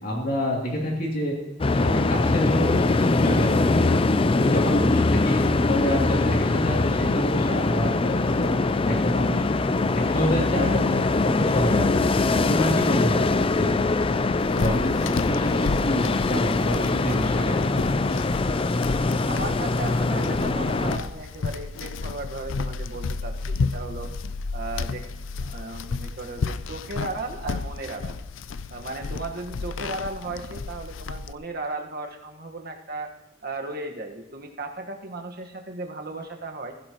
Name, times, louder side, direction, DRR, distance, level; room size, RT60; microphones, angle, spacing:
voice 1, 0.0-1.4 1.7-4.0 4.4-8.5 8.8-9.4 9.9-13.3 13.5-13.8 14.5-17.7, equal, 50° left, -2 dB, 2.9 m, -28 dB
sound 1, 1.6-21.0, left 3 dB, 30° left, 0.5 m, -22 dB
sound 2, 14.4-31.3, left 4 dB, 85° left, 0.5 m, -32 dB
voice 2, 19.2-24.1 24.5-25.0 25.4-28.2 28.7-33.1 33.4-36.7, right 2 dB, 55° right, 3 dB, 1.5 m, -35 dB
16.0 x 15.5 x 3.0 m, 1.0 s
head